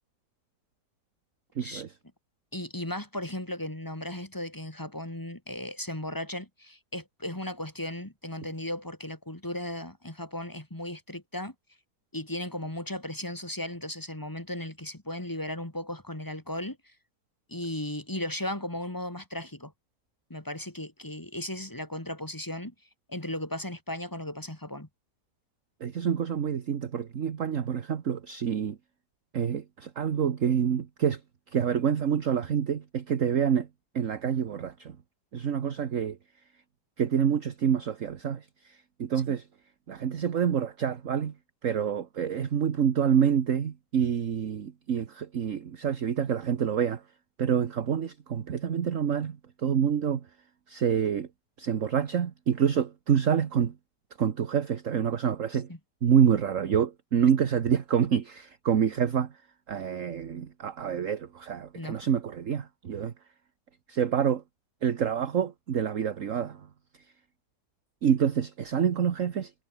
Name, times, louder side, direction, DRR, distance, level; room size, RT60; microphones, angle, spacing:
voice 1, 1.5-2.0 25.8-28.8 29.3-35.0 35.3-36.6 37.0-39.5 39.9-51.3 51.6-53.8 54.2-55.7 56.0-63.3 63.9-64.4 64.8-67.1 68.0-69.5, right 8 dB, 50° right, 1.5 m, -27 dB
voice 2, 2.5-11.5 12.1-16.8 17.5-19.7 20.3-22.7 23.1-24.9 61.7-62.0, left 1 dB, 10° left, 2.7 m, -36 dB
omnidirectional pair, 1.8 m